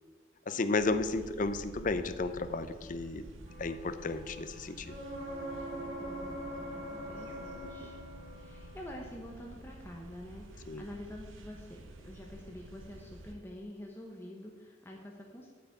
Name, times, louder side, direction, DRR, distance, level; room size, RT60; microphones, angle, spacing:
voice 1, 0.5-3.2 3.6-5.0 7.8-7.9 10.7-10.8, left 3 dB, 40° left, 12 dB, 0.5 m, -33 dB
sound 1, 0.7-13.3, right 1 dB, 90° right, 0.9 m, -50 dB
Wind instrument woodwind instrument, 3.4-9.4, left 2 dB, 70° left, 3.2 m, -57 dB
scary honk, 4.8-8.6 12.3-12.4, right 1 dB, 55° right, 2.9 m, -41 dB
voice 2, 6.0-8.0 8.3-15.5, left 1 dB, 10° left, -1 dB, 0.9 m, -47 dB
8.3 x 5.8 x 8.0 m, 1.5 s
head